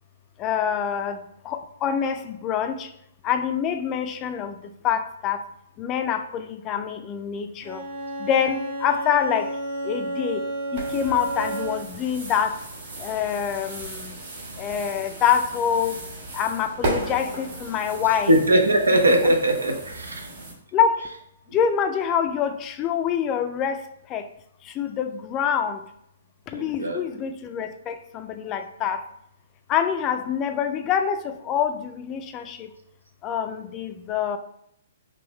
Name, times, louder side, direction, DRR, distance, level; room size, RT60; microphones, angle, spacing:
voice 1, 0.4-1.2 1.4-2.9 3.2-4.5 4.8-5.4 5.8-7.8 8.2-9.6 9.8-10.4 10.7-12.6 13.0-14.1 14.6-16.0 16.3-18.3 20.7-21.1 21.5-24.3 24.7-25.8 26.5-29.0 29.7-32.7 33.2-34.4, left 8 dB, 25° left, 8 dB, 0.3 m, -25 dB
Bowed string instrument, 7.6-12.0, right 2 dB, 70° right, 1.5 m, -31 dB
sound 1, 10.7-20.5, right 2 dB, 55° right, 1.4 m, -35 dB
voice 2, 18.3-20.3 26.5-27.0, right 1 dB, 90° right, 3 dB, 0.6 m, -20 dB
3.7 x 2.5 x 3.0 m, 0.73 s
hypercardioid pair, 125°, 0 cm